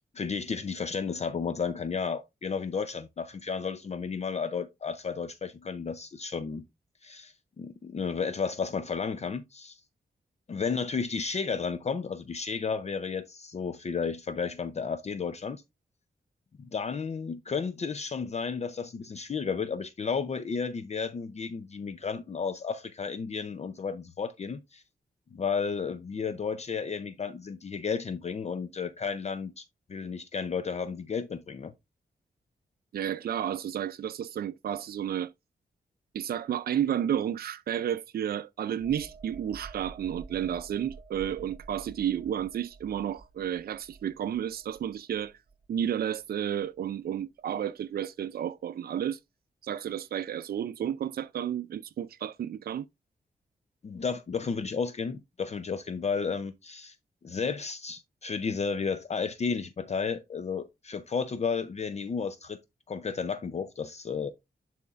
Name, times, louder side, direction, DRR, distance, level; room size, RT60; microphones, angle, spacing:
voice 1, 0.1-6.6 7.0-9.8 10.5-15.6 16.6-24.8 25.3-31.7 53.8-57.0 57.2-62.6 62.9-64.3, left 5 dB, 45° left, 0.5 m, -33 dB
voice 2, 32.9-35.3 36.1-45.3 45.7-49.2 49.6-52.9, right 9 dB, 75° right, 0.4 m, -32 dB
sound 1, 38.8-46.2 46.6-46.8, right 4 dB, 35° right, 0.9 m, -49 dB
10.5 x 4.3 x 2.4 m
wide cardioid pair, 105°, 16 cm